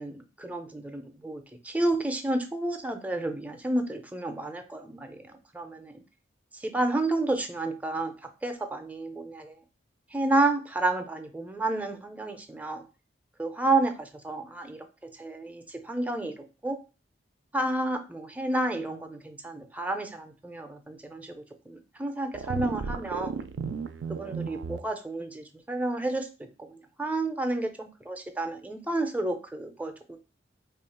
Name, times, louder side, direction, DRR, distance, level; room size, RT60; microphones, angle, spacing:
voice 1, 0.0-5.9 6.6-8.1 8.4-9.6 10.1-12.8 13.4-14.8 15.2-16.3 16.6-16.8 17.5-21.3 21.7-23.4 24.1-26.3 27.0-30.2, right 2 dB, 10° right, 6 dB, 0.4 m, -30 dB
sound 1, 22.3-24.8, right 5 dB, 80° right, 0.3 m, -34 dB
3.1 x 2.3 x 4.3 m, 0.32 s
head